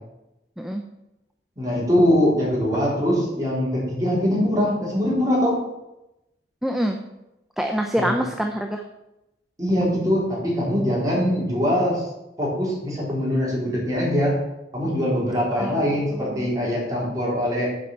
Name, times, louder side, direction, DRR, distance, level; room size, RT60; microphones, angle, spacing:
voice 1, 1.6-5.6 8.0-8.1 9.6-12.1 12.4-14.4 14.7-17.7, equal, 20° right, -6 dB, 3.8 m, -22 dB
voice 2, 6.6-7.0 7.6-8.8 15.6-16.5, equal, ahead, 3 dB, 0.5 m, -26 dB
7.7 x 5.6 x 7.2 m, 0.92 s
head